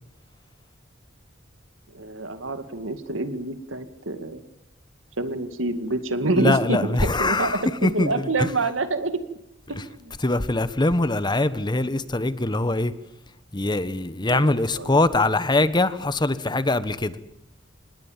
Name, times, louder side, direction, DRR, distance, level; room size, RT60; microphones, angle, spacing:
voice 1, 1.9-4.4 5.2-9.2 9.7-10.1 14.3-14.9, right 2 dB, 85° right, 2.2 m, -27 dB
voice 2, 6.4-8.1 8.4-8.5 10.2-12.9 13.5-17.1, left 2 dB, 25° left, 1.1 m, -22 dB
27.0 x 20.0 x 7.4 m
head